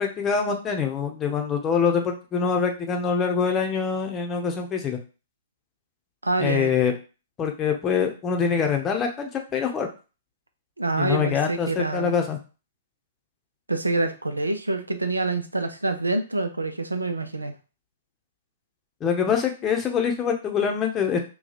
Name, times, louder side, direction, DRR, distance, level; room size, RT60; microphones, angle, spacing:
voice 1, 0.0-5.0 6.4-6.9 7.4-9.9 11.0-12.4 19.0-21.2, left 6 dB, 20° left, 3 dB, 0.8 m, -24 dB
voice 2, 6.2-6.7 10.8-12.2 13.7-17.5, right 2 dB, 85° right, 7 dB, 0.5 m, -26 dB
2.9 x 2.3 x 4.0 m, 0.33 s
figure-of-eight pair, 115°, 0 cm